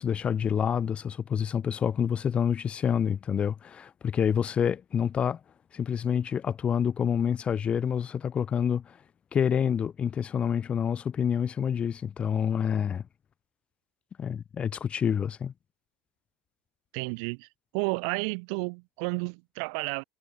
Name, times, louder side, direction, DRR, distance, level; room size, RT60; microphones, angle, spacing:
voice 1, 0.0-5.4 5.7-9.0 9.3-13.0 14.2-15.5, left 8 dB, 30° left, 0.6 m, -27 dB
voice 2, 16.9-17.5 17.7-20.0, right 39 dB, 60° right, 2.2 m, -31 dB
figure-of-eight pair, 75°, 4 cm